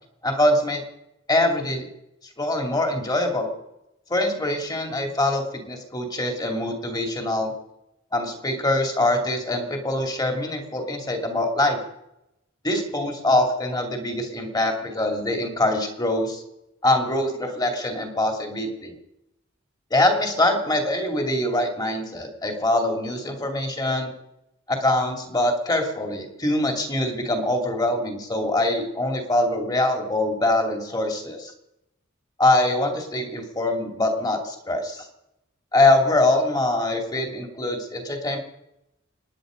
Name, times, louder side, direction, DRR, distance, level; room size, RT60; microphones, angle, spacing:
voice 1, 0.2-0.8 1.3-1.9 2.4-3.5 4.1-7.5 8.1-11.8 12.6-16.4 16.8-19.0 19.9-24.1 24.7-31.5 32.4-35.1 35.7-38.4, left 1 dB, 20° left, 3 dB, 2.7 m, -23 dB
26.5 x 10.5 x 5.2 m, 0.87 s
head